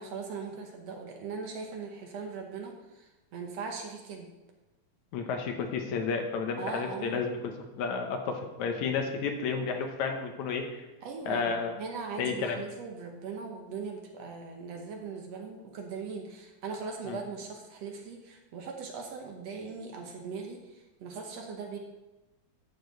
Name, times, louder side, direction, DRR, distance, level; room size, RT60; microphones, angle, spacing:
voice 1, 0.0-4.3 6.6-7.2 11.0-21.8, right 5 dB, 65° right, 2 dB, 2.0 m, -40 dB
voice 2, 5.1-10.8 11.3-11.8 12.2-12.6 17.1-17.2, left 5 dB, 75° left, 4 dB, 2.2 m, -32 dB
11.0 x 7.0 x 4.0 m, 1.0 s
omnidirectional pair, 3.5 m